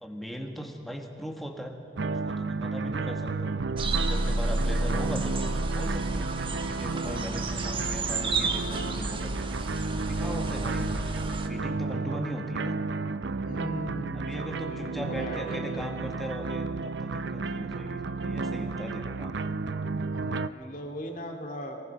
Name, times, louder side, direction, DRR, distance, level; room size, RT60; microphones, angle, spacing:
voice 1, 0.0-1.8 2.1-3.5 4.0-6.3 6.7-9.5 10.1-10.9 11.4-12.8 14.1-19.4, equal, ahead, 2 dB, 1.6 m, -39 dB
sound 1, 2.0-20.5, right 3 dB, 70° right, 0.6 m, -32 dB
sound 2, 3.8-11.5, right 2 dB, 30° right, 1.1 m, -31 dB
voice 2, 13.4-16.2 20.1-21.8, equal, 45° left, 3 dB, 2.2 m, -39 dB
23.5 x 19.0 x 5.8 m, 2.6 s
head